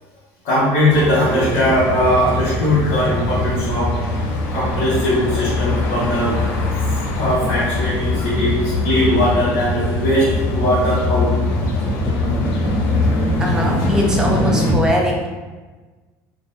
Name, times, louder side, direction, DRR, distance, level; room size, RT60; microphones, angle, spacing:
voice 1, 0.4-4.0 4.5-6.4 7.2-11.3, equal, 75° left, -11 dB, 1.3 m, -19 dB
sound 1, 0.9-14.7, left 2 dB, 60° left, 0.6 m, -21 dB
voice 2, 13.4-15.3, equal, 10° right, -2 dB, 0.5 m, -20 dB
4.0 x 2.5 x 2.7 m, 1.3 s
cardioid pair, 165°, 7 cm